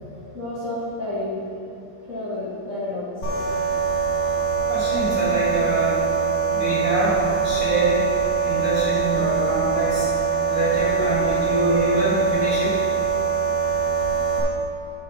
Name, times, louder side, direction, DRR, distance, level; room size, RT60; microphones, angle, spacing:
voice 1, 0.3-1.4 2.1-3.4, left 1 dB, 75° left, -11 dB, 0.7 m, -30 dB
sound 1, 3.2-14.4, right 6 dB, 50° left, 1.5 m, -23 dB
voice 2, 4.7-6.0 6.5-8.0 8.5-10.1 10.5-12.7, right 2 dB, 40° right, -9 dB, 2.0 m, -24 dB
10.5 x 7.4 x 3.0 m, 2.5 s
omnidirectional pair, 4.6 m